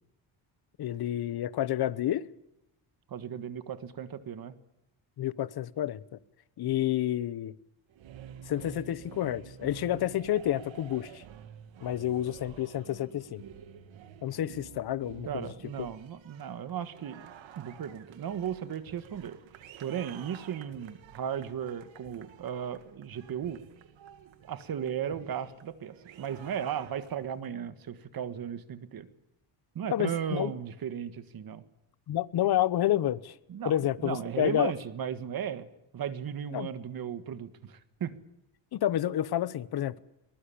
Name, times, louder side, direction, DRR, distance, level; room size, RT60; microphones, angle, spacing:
voice 1, 0.8-2.3 5.2-6.0 6.6-7.5 8.5-11.2 11.8-13.4 14.2-15.5 29.9-30.5 32.1-33.3 33.6-34.7 36.5-36.7 38.7-40.0, left 12 dB, 55° left, 1.0 m, -29 dB
voice 2, 3.1-4.5 15.3-19.4 19.8-23.6 24.4-29.1 29.7-31.6 33.5-35.7 35.9-38.2, right 8 dB, 50° right, 1.7 m, -36 dB
sound 1, 7.9-27.5, right 9 dB, 80° right, 2.1 m, -50 dB
22.5 x 20.0 x 8.6 m
cardioid pair, 135°, 45 cm